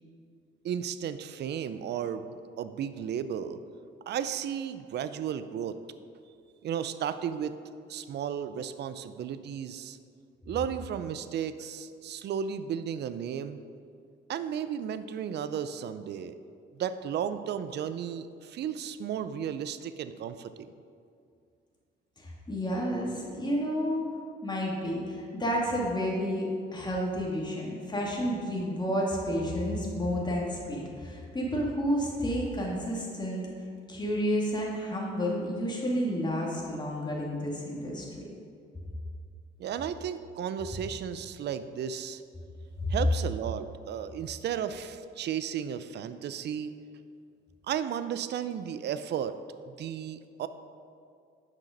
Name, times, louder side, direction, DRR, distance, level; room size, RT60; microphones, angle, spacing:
voice 1, 0.6-2.2 2.6-3.6 4.1-5.8 6.6-7.5 7.9-10.0 10.5-13.6 14.3-16.4 16.7-20.7 39.6-42.2 42.9-46.7 47.7-49.4 49.7-50.5, right 8 dB, 60° right, 12 dB, 0.5 m, -34 dB
voice 2, 22.2-24.1 24.4-33.4 33.9-38.1 42.8-42.9, equal, 20° left, -3 dB, 2.3 m, -30 dB
9.0 x 5.9 x 5.2 m, 2.4 s
cardioid pair, 90°, 20 cm